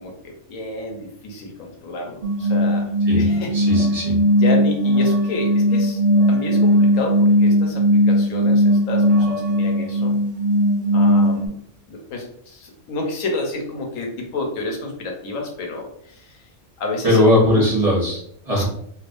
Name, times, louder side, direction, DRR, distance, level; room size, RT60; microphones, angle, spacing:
voice 1, 0.0-2.9 3.2-3.5 4.3-6.0 6.3-10.1 10.9-11.5 11.9-16.4 16.8-17.2 17.5-17.9 18.6-18.7, left 2 dB, 85° left, 2 dB, 1.2 m, -30 dB
sound 1, 2.2-11.5, equal, 50° right, 0.7 m, -18 dB
voice 2, 3.5-4.2 17.0-18.6, left 1 dB, 30° right, -5 dB, 1.2 m, -19 dB
3.3 x 2.7 x 2.5 m, 0.68 s
omnidirectional pair, 1.3 m